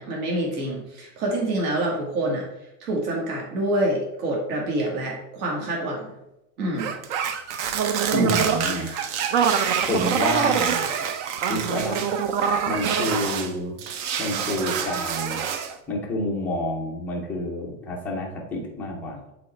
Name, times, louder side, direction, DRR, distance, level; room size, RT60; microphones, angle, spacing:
voice 1, 0.0-2.5 2.8-6.1 6.6-6.9 8.1-8.3 8.6-9.1, right 1 dB, 65° right, -2 dB, 2.2 m, -27 dB
sound 1, 6.8-13.5 13.8-15.7, right 7 dB, 45° right, 0.7 m, -25 dB
voice 2, 8.1-8.9 9.9-10.9 11.5-12.0 12.6-13.8 14.2-15.4 15.9-19.3, left 1 dB, 5° left, -4 dB, 0.4 m, -28 dB
7.6 x 4.0 x 4.3 m, 0.90 s
supercardioid pair, 160°, 48 cm